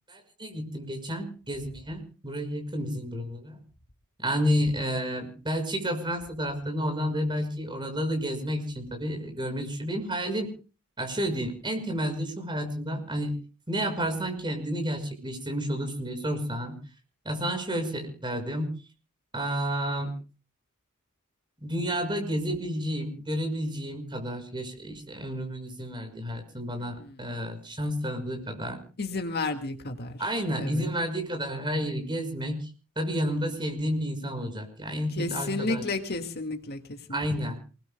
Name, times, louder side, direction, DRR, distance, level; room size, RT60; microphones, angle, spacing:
voice 1, 0.1-3.6 4.2-10.5 11.0-13.4 13.7-16.8 17.2-18.8 19.3-20.1 21.6-28.8 30.2-32.7 33.0-35.8 37.1-37.6, equal, 20° right, 4 dB, 5.9 m, -31 dB
voice 2, 26.8-27.3 29.0-30.2 30.6-30.9 35.2-37.5, left 3 dB, 50° left, 5 dB, 2.0 m, -32 dB
28.0 x 20.5 x 2.2 m, 0.35 s
head